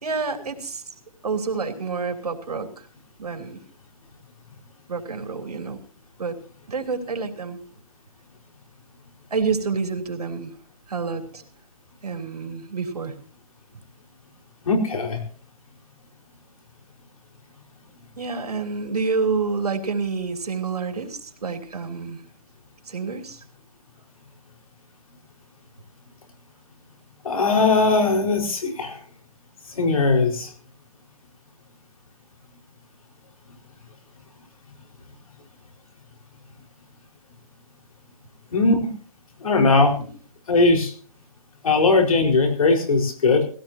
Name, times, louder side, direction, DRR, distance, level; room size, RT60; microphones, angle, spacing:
voice 1, 0.0-0.8 1.2-2.9 3.2-3.6 4.9-5.8 6.2-6.4 6.7-7.6 9.3-10.5 10.9-11.4 12.0-13.1 18.2-22.2 22.9-23.4 41.7-41.8, right 4 dB, 85° right, 5 dB, 3.3 m, -28 dB
voice 2, 14.6-15.2 27.2-29.0 29.7-30.5 38.5-38.9 39.4-39.9 40.5-40.9 41.6-43.4, left 3 dB, 65° left, 4 dB, 4.6 m, -19 dB
18.5 x 17.0 x 2.8 m, 0.41 s
hypercardioid pair, 165°, 19 cm